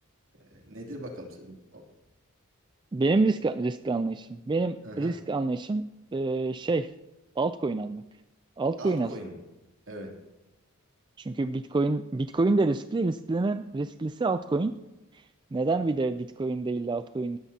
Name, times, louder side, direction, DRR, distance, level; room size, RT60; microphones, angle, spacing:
voice 1, 0.3-1.8 4.8-5.1 8.8-9.4 9.9-10.2, right 1 dB, 60° right, 1 dB, 2.9 m, -41 dB
voice 2, 2.9-5.8 6.1-6.9 7.4-8.0 8.6-9.1 11.2-14.7 15.5-17.4, right 3 dB, 20° right, 10 dB, 0.3 m, -27 dB
19.0 x 13.0 x 2.9 m, 0.99 s
head